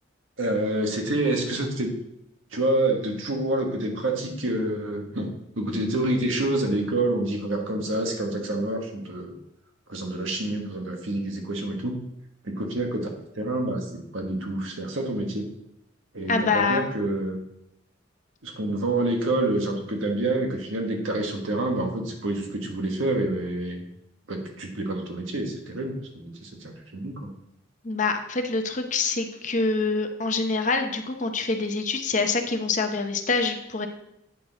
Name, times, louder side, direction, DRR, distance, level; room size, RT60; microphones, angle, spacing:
voice 1, 0.4-1.9 2.5-9.3 9.9-12.1 12.4-15.5 16.1-17.4 18.4-23.8 24.3-27.3, right 1 dB, 80° right, 2 dB, 1.4 m, -27 dB
voice 2, 16.3-16.8 27.8-33.9, left 3 dB, 40° left, 6 dB, 0.7 m, -25 dB
8.5 x 5.9 x 3.9 m, 0.81 s
head